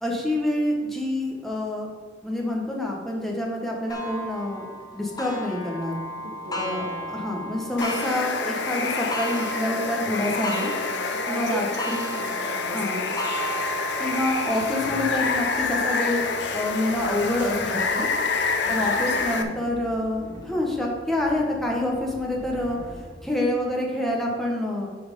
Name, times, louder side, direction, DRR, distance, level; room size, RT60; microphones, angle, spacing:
voice 1, 0.0-1.9 2.2-4.7 4.9-6.0 6.5-10.7 11.3-12.1 12.7-13.0 14.0-16.2 16.5-18.1 18.7-22.8 23.2-24.9, left 1 dB, ahead, -2 dB, 1.3 m, -27 dB
Clock, 3.9-19.2 19.8-19.9 20.4-20.5 21.5-21.6, right 1 dB, 20° left, 1.0 m, -36 dB
voice 2, 6.4-7.1 11.3-13.6 18.6-19.5, right 2 dB, 80° right, 0 dB, 1.6 m, -37 dB
Water, 7.8-19.4, left 4 dB, 70° left, 0.7 m, -27 dB
sound 1, 13.4-24.0, equal, 25° right, 1.9 m, -45 dB
8.6 x 4.4 x 5.4 m, 1.5 s
head